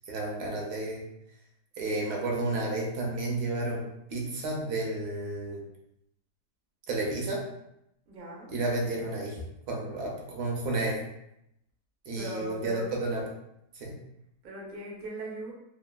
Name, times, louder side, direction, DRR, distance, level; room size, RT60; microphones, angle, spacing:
voice 1, 0.1-1.0 1.8-3.8 4.1-5.6 6.9-7.4 8.5-11.0 12.1-13.2 13.7-13.9, right 2 dB, 75° right, -1 dB, 1.2 m, -31 dB
voice 2, 8.1-8.5 12.1-12.9 14.4-15.5, right 1 dB, 60° right, -2 dB, 0.5 m, -39 dB
3.3 x 2.1 x 2.2 m, 0.81 s
omnidirectional pair, 1.8 m